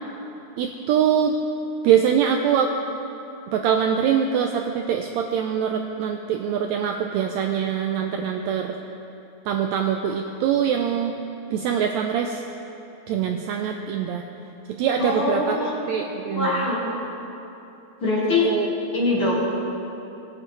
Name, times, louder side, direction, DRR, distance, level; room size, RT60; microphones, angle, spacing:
voice 1, 0.6-1.4 1.8-2.7 3.5-8.7 9.5-11.1 11.5-12.4 13.1-14.2 14.8-15.6 15.9-16.7 18.4-18.7, right 8 dB, 80° right, 4 dB, 1.6 m, -23 dB
voice 2, 15.0-15.7 16.3-16.8 18.0-18.5 18.9-19.7, left 2 dB, 45° left, -5 dB, 2.3 m, -23 dB
19.0 x 8.6 x 3.2 m, 2.9 s
omnidirectional pair, 3.6 m